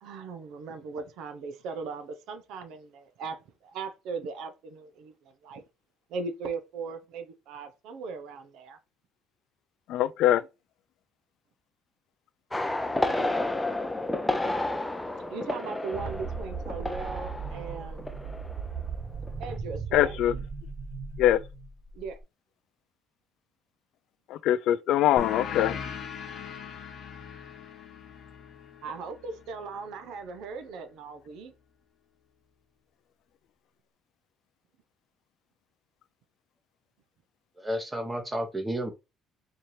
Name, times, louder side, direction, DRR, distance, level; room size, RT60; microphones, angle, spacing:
voice 1, 0.0-5.1 5.4-5.6 6.1-8.8 15.3-18.1 19.4-20.2 21.9-22.1 28.8-31.5, right 4 dB, 75° right, 0.8 m, -38 dB
voice 2, 9.9-10.4 19.9-20.4 21.2-21.4 24.4-25.7, left 12 dB, 70° left, 0.3 m, -22 dB
sound 1, 12.5-19.0 19.2-19.6, left 2 dB, 10° left, 0.5 m, -31 dB
sound 2, 15.9-22.2, right 5 dB, 40° right, 0.8 m, -37 dB
sound 3, 25.2-30.4, left 7 dB, 50° left, 0.9 m, -40 dB
voice 3, 37.6-38.9, equal, 10° right, 0.9 m, -31 dB
4.3 x 2.9 x 3.2 m
cardioid pair, 110°, 0 cm